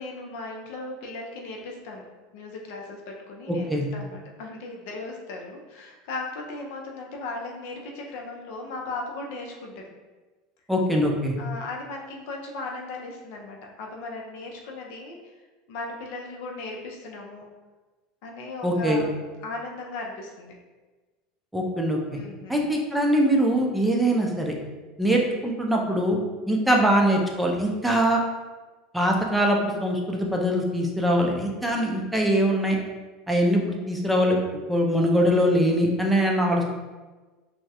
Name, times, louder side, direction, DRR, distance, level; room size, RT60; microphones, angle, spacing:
voice 1, 0.0-2.0 2.3-9.8 11.4-15.3 15.7-17.4 18.2-19.1 19.4-20.5 22.1-22.7, left 2 dB, 70° left, 0 dB, 0.4 m, -37 dB
voice 2, 10.7-11.4 18.6-19.0 21.5-22.2 22.5-24.5 25.0-26.2 26.5-28.2 28.9-32.8 33.3-34.4 34.7-36.6, equal, 5° right, -1 dB, 0.4 m, -22 dB
2.2 x 2.0 x 2.7 m, 1.3 s
hypercardioid pair, 90°, 0 cm